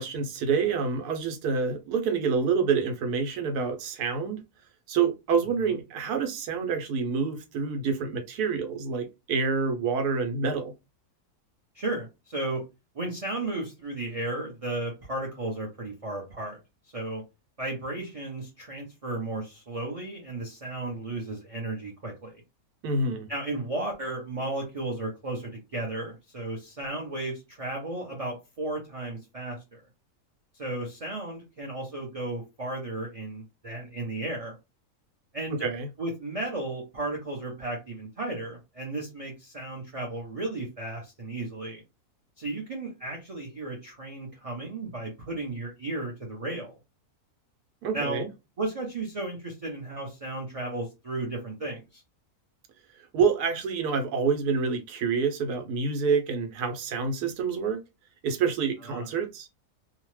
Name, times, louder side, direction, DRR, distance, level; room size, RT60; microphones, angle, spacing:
voice 1, 0.0-4.4 4.9-10.7 22.8-23.3 35.5-35.9 47.8-48.3 53.1-57.8 58.2-59.5, right 5 dB, 85° right, 1.2 m, -27 dB
voice 2, 11.7-12.6 12.9-16.6 16.9-17.2 17.6-22.4 23.3-29.8 30.5-34.6 35.3-35.7 36.0-41.8 42.4-46.7 47.9-48.2 48.6-52.0 58.8-59.1, right 2 dB, 45° right, 0.4 m, -34 dB
2.8 x 2.0 x 3.1 m
omnidirectional pair, 1.6 m